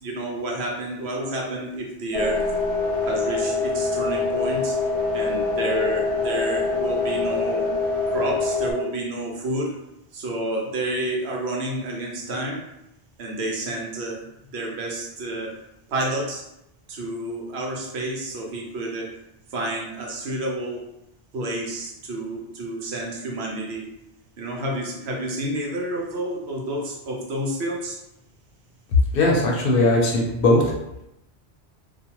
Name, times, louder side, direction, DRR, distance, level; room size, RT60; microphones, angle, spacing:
voice 1, 0.0-2.4 3.0-4.8 5.1-7.7 8.1-9.8 10.1-12.7 13.2-15.6 15.9-16.5 16.9-19.1 19.5-20.9 21.3-23.9 24.4-28.0, right 1 dB, 80° right, -1 dB, 0.9 m, -30 dB
sound 1, 2.1-8.7, left 3 dB, 35° right, 0.5 m, -24 dB
voice 2, 29.1-30.6, left 2 dB, 65° left, -2 dB, 0.7 m, -19 dB
2.4 x 2.1 x 2.9 m, 0.85 s
omnidirectional pair, 1.1 m